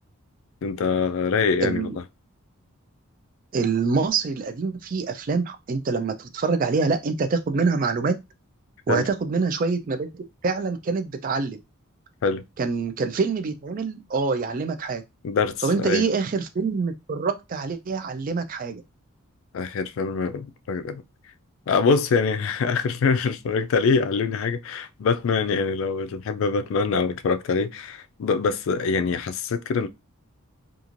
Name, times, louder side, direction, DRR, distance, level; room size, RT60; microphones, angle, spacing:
voice 1, 0.6-2.0 8.9-9.0 12.2-12.4 15.2-16.0 19.5-21.0 21.7-29.9, left 5 dB, 60° left, 0.3 m, -24 dB
voice 2, 1.6-2.0 3.5-8.1 8.9-11.6 12.6-15.0 15.6-18.8, right 4 dB, 40° right, 0.3 m, -25 dB
3.0 x 2.4 x 2.4 m
head